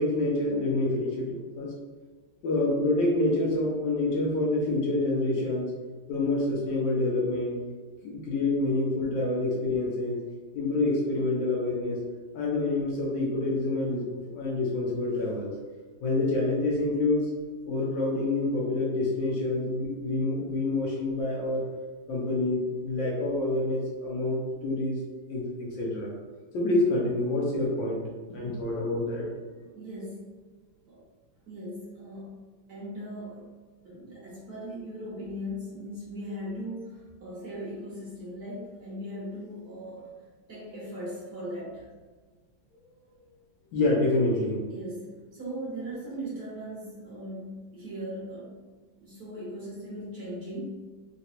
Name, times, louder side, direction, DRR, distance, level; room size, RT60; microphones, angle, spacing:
voice 1, 0.0-1.7 2.4-5.7 6.1-7.6 8.0-10.3 10.5-12.0 12.3-15.5 16.0-17.3 17.7-21.7 22.1-25.0 25.3-26.1 26.5-28.0 28.3-29.3 43.7-44.6, left 2 dB, 70° left, -3 dB, 1.3 m, -27 dB
voice 2, 29.6-30.4 30.9-31.0 31.5-33.5 33.8-40.1 40.5-41.9 44.7-48.6 49.0-50.6, equal, 55° right, -7 dB, 1.2 m, -39 dB
3.9 x 2.2 x 2.8 m, 1.4 s
omnidirectional pair, 2.3 m